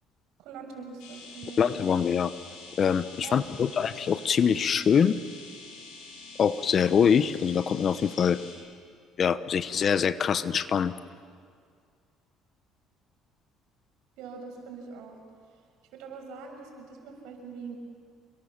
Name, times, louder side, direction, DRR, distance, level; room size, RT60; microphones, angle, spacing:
voice 1, 0.4-1.7 3.2-3.8 14.2-15.2 15.9-17.8, right 5 dB, 80° right, 2 dB, 6.4 m, -43 dB
sound 1, 1.0-8.5, left 3 dB, 85° left, 6.9 m, -46 dB
voice 2, 1.6-2.3 2.8-5.2 6.4-8.4 9.2-10.9, left 7 dB, 45° left, 14 dB, 1.0 m, -24 dB
28.0 x 22.5 x 7.4 m, 2.1 s
supercardioid pair, 90°, 0 cm